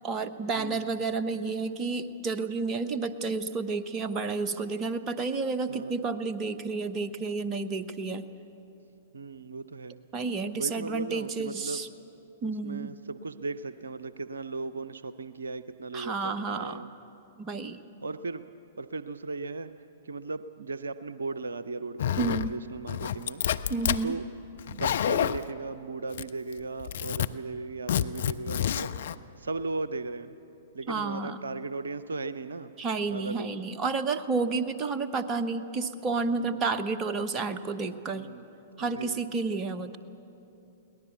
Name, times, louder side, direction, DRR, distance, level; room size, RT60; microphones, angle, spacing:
voice 1, 0.0-8.3 10.1-11.9 12.4-12.9 15.9-16.8 17.4-17.8 22.2-22.5 23.7-24.2 30.9-31.4 32.8-38.3 38.8-40.0, right 4 dB, 25° right, 9 dB, 1.0 m, -31 dB
voice 2, 0.5-1.0 5.7-6.0 9.1-10.0 10.5-11.8 12.4-16.9 18.0-18.4 18.8-19.7 20.0-23.4 24.0-24.2 24.7-28.9 29.4-30.3 30.7-32.7 33.1-33.5 36.3-36.7 38.1-38.5 38.8-39.2, right 3 dB, 75° right, 13 dB, 0.6 m, -37 dB
Zipper (clothing), 22.0-22.5 22.9-24.0 24.6-25.5 26.1-26.5 26.8-27.3 27.9-29.1, left 10 dB, 60° left, 0.6 m, -28 dB
23.0 x 18.0 x 8.2 m, 2.9 s
figure-of-eight pair, 110°, 0 cm